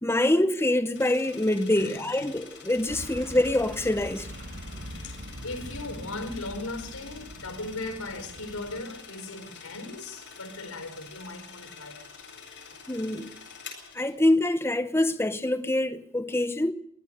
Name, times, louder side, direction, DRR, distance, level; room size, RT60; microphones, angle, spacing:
voice 1, 0.0-4.3 12.9-13.3 13.9-16.7, left 1 dB, 10° left, 0.9 m, -25 dB
sound 1, 0.9-14.1, left 5 dB, 55° left, 7.9 m, -47 dB
sound 2, 2.9-8.9, right 1 dB, 50° right, 3.0 m, -42 dB
voice 2, 5.0-12.3, left 2 dB, 75° left, 4.3 m, -38 dB
24.0 x 17.5 x 6.7 m
head